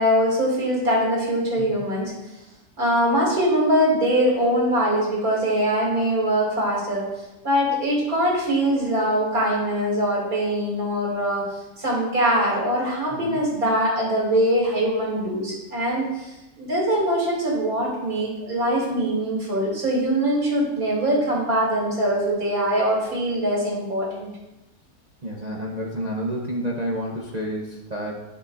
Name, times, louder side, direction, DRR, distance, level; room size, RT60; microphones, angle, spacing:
voice 1, 0.0-2.1 2.8-7.1 7.4-11.5 11.8-24.3, equal, 65° right, -4 dB, 2.9 m, -22 dB
voice 2, 25.2-28.2, equal, 40° right, -2 dB, 0.6 m, -29 dB
10.5 x 6.8 x 2.5 m, 0.97 s
omnidirectional pair, 1.7 m